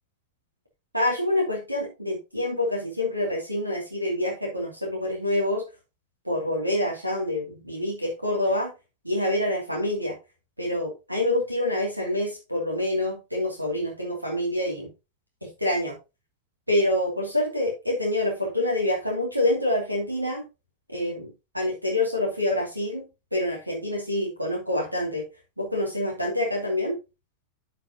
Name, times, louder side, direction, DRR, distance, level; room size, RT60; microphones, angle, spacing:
voice 1, 0.9-5.6 6.2-8.7 9.0-10.2 10.6-14.9 15.4-15.9 16.7-20.4 20.9-23.0 23.3-25.2 25.6-27.0, left 1 dB, 85° right, 0 dB, 2.7 m, -26 dB
11.0 x 6.1 x 2.9 m, 0.27 s
figure-of-eight pair, 90°, 0 cm